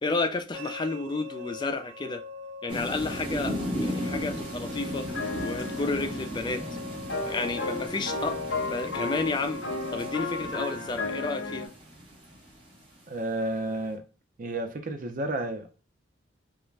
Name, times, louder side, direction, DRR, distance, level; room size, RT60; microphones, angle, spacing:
voice 1, 0.0-2.2 2.6-5.1 5.4-6.6 7.3-8.4 8.6-9.6 9.9-11.7, left 3 dB, 25° left, 0.3 m, -31 dB
sound 1, 0.5-10.7, left 2 dB, 75° right, 0.8 m, -42 dB
sound 2, 2.7-12.8, equal, 30° right, 0.8 m, -36 dB
sound 3, 5.1-11.7, left 3 dB, 70° left, 0.7 m, -34 dB
voice 2, 13.1-14.0 14.4-15.7, right 1 dB, 45° right, 0.5 m, -31 dB
2.4 x 2.1 x 3.2 m
head